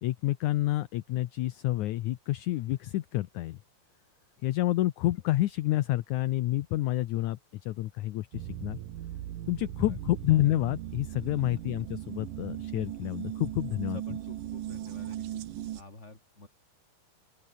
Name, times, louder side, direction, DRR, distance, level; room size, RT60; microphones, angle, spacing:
voice 1, 0.0-3.6 4.4-8.8 9.5-14.0, left 16 dB, 70° left, 2.1 m, -29 dB
sound 1, 8.3-15.8, right 12 dB, 85° right, 3.0 m, -38 dB
voice 2, 9.6-10.0 13.7-16.5, left 2 dB, 20° left, 5.0 m, -50 dB
open air
omnidirectional pair, 3.8 m